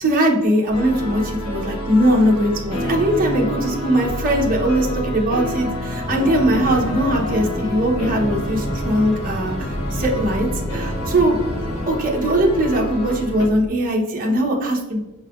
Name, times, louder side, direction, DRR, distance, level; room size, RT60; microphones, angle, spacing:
voice 1, 0.0-15.0, right 1 dB, 40° right, -1 dB, 0.9 m, -20 dB
sound 1, 0.7-13.5, equal, 85° left, 0.9 m, -30 dB
sound 2, 0.7-13.7, equal, 50° left, 1.2 m, -32 dB
sound 3, 6.0-11.9, left 1 dB, 30° left, 0.4 m, -31 dB
5.9 x 3.3 x 2.4 m, 1.0 s
head